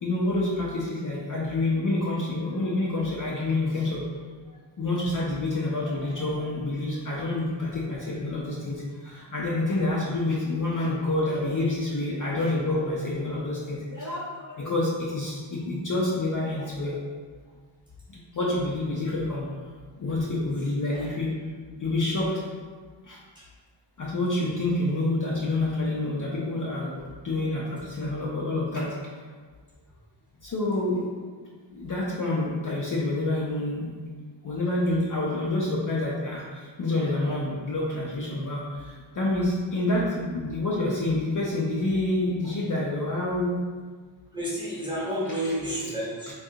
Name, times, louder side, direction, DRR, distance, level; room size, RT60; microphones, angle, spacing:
voice 1, 0.0-4.0 4.8-17.0 18.1-19.5 19.9-21.3 21.8-22.5 23.1-23.2 24.0-28.9 30.4-31.0 31.7-33.9 34.4-43.6 46.3-46.4, left 2 dB, 45° left, -5 dB, 0.5 m, -28 dB
voice 2, 44.3-46.3, equal, 10° right, -8 dB, 1.0 m, -31 dB
3.7 x 2.3 x 2.7 m, 1.5 s
wide cardioid pair, 110°, 47 cm